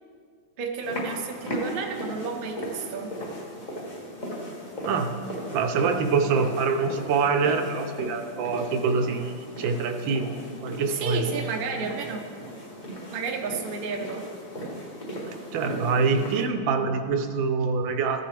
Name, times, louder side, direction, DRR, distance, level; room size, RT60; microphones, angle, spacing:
voice 1, 0.6-3.1 10.9-12.2 13.1-14.2, right 5 dB, 55° right, 2 dB, 0.6 m, -31 dB
sound 1, 0.8-16.5, equal, 25° left, 1.3 m, -37 dB
voice 2, 5.5-10.3 10.6-11.3 15.5-18.2, right 5 dB, 75° right, 7 dB, 1.4 m, -25 dB
14.0 x 6.8 x 3.3 m, 2.1 s
omnidirectional pair, 2.2 m